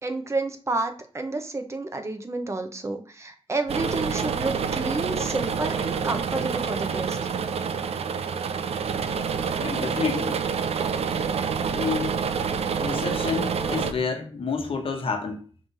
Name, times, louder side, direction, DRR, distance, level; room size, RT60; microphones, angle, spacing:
voice 1, 0.0-7.2, right 2 dB, 30° right, 0.8 m, -30 dB
sound 1, 3.7-13.9, right 6 dB, 90° right, 0.5 m, -27 dB
voice 2, 9.6-10.4 11.7-12.2 12.8-15.5, left 5 dB, 65° left, 1.1 m, -29 dB
5.8 x 3.3 x 5.4 m
wide cardioid pair, 150°, 10 cm